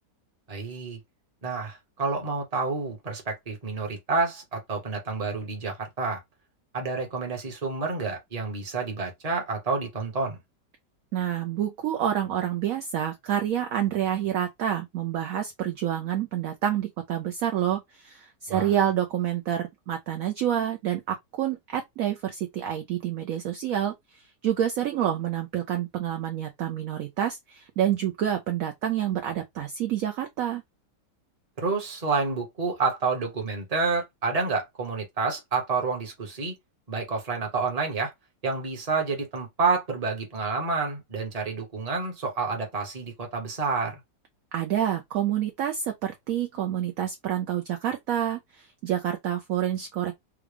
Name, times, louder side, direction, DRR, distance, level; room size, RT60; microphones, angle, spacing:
voice 1, 0.5-1.0 1.4-6.2 6.7-10.4 18.5-18.7 31.6-36.5 36.9-38.1 38.4-44.0, right 4 dB, 25° right, 0.9 m, -29 dB
voice 2, 11.1-30.6 44.5-50.1, right 10 dB, 70° right, 0.8 m, -28 dB
3.6 x 2.3 x 3.2 m
omnidirectional pair, 1.9 m